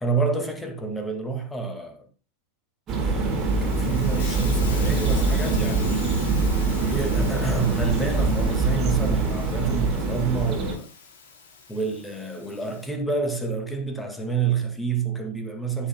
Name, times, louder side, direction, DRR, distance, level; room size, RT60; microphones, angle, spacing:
voice 1, 0.0-2.1 3.0-6.1 6.8-10.9 11.7-15.9, right 5 dB, 10° left, 1.9 m, -28 dB
Hiss, 2.9-12.9, left 5 dB, 50° left, 3.8 m, -42 dB
sound 1, 2.9-10.7, right 3 dB, 30° right, 4.7 m, -24 dB
16.5 x 7.3 x 2.2 m
figure-of-eight pair, 90°, 0 cm